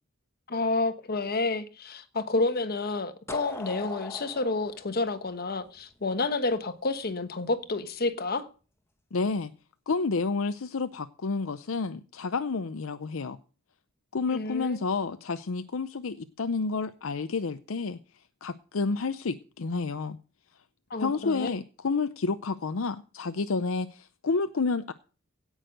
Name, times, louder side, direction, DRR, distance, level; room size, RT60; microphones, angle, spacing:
voice 1, 0.5-8.5 14.3-14.8 20.9-21.6, left 3 dB, 50° left, 1.3 m, -29 dB
sound 1, 3.3-6.1, left 2 dB, 15° left, 1.3 m, -41 dB
voice 2, 9.1-9.5 9.9-13.4 14.1-18.0 18.4-20.2 21.0-24.9, left 4 dB, 70° left, 0.6 m, -30 dB
17.0 x 6.4 x 6.4 m
head